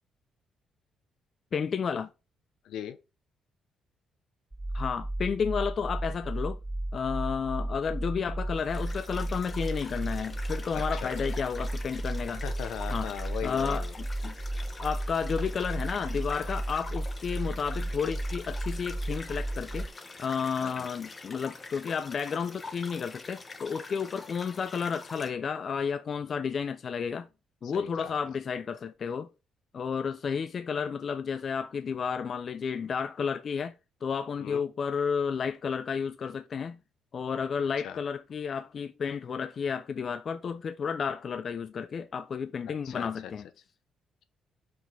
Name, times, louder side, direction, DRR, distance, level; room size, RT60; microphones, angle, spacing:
voice 1, 1.5-2.1 4.7-6.6 6.9-12.4 12.9-13.1 13.4-14.4 14.8-19.9 20.2-27.3 27.6-29.3 29.7-33.7 34.0-36.8 37.1-43.5, left 6 dB, 50° left, 0.5 m, -32 dB
voice 2, 2.6-3.0 10.7-11.1 12.3-13.9 20.6-20.9 27.7-28.1 34.4-34.6 37.8-38.0 42.8-43.3, left 9 dB, 80° left, 0.7 m, -39 dB
sound 1, 4.5-19.9, right 1 dB, 15° right, 0.3 m, -34 dB
sound 2, 8.5-25.3, left 3 dB, 30° left, 1.1 m, -45 dB
5.7 x 5.1 x 3.4 m
cardioid pair, 90°, 0 cm